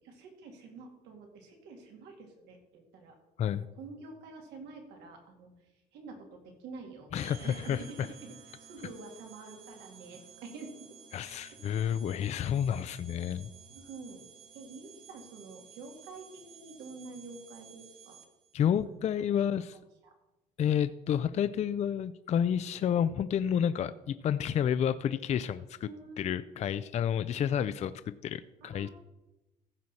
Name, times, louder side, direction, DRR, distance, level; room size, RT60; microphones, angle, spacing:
voice 1, 0.0-3.1 3.5-5.5 5.9-7.1 7.4-8.3 8.6-10.9 11.2-11.4 13.7-14.2 14.5-18.2 19.4-19.6 20.0-20.1 25.8-26.5 28.6-28.9, right 3 dB, 85° right, 2 dB, 2.5 m, -48 dB
voice 2, 7.1-8.1 11.1-13.5 18.5-19.8 20.6-25.9 26.2-27.9 28.2-28.9, left 9 dB, 40° left, 13 dB, 0.4 m, -30 dB
sound 1, 7.1-18.5, right 7 dB, 65° right, 1.2 m, -54 dB
15.0 x 6.3 x 4.2 m, 1.0 s
cardioid pair, 110°, 17 cm